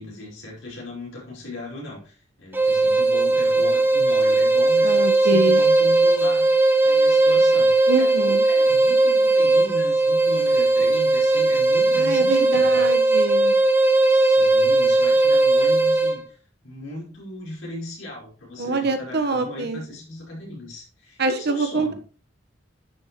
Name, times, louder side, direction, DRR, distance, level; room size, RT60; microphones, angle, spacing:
voice 1, 0.0-12.9 14.0-16.2 16.6-22.0, left 1 dB, 85° left, -4 dB, 5.5 m, -37 dB
sound 1, 2.5-16.2, right 2 dB, 10° right, 1.0 m, -18 dB
voice 2, 4.8-5.6 7.9-8.4 11.9-13.6 18.6-19.8 21.2-21.9, right 3 dB, 60° right, 7 dB, 1.2 m, -25 dB
10.5 x 7.3 x 3.1 m, 0.39 s
head